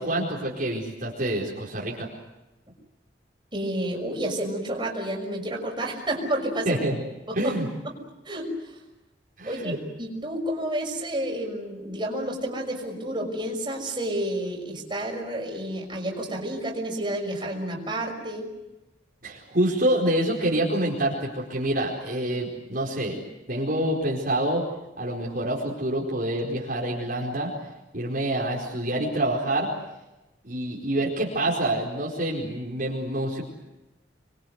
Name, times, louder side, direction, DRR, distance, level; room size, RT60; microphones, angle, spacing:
voice 1, 0.0-2.1 6.7-7.0 7.4-7.7 9.4-9.8 19.2-23.2 23.5-24.6 25.0-27.5 27.9-29.7 30.4-33.4, right 1 dB, 50° right, -4 dB, 4.5 m, -27 dB
voice 2, 3.5-6.9 7.3-7.5 7.8-8.0 8.2-8.7 9.4-18.5, right 1 dB, 25° right, 0 dB, 6.0 m, -30 dB
27.5 x 23.0 x 8.0 m, 1.0 s
head